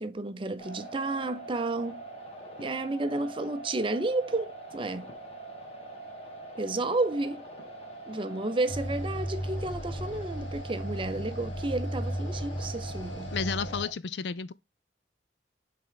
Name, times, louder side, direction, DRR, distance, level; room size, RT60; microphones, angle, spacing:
voice 1, 0.0-2.0 2.6-5.1 6.6-7.4 8.1-13.3, right 2 dB, 25° right, 0.6 m, -31 dB
sound 1, 0.6-13.9, right 2 dB, 35° left, 1.7 m, -44 dB
sound 2, 8.7-13.8, equal, 90° left, 2.2 m, -35 dB
voice 2, 13.3-14.5, left 5 dB, 70° left, 0.5 m, -32 dB
7.6 x 3.7 x 3.7 m
head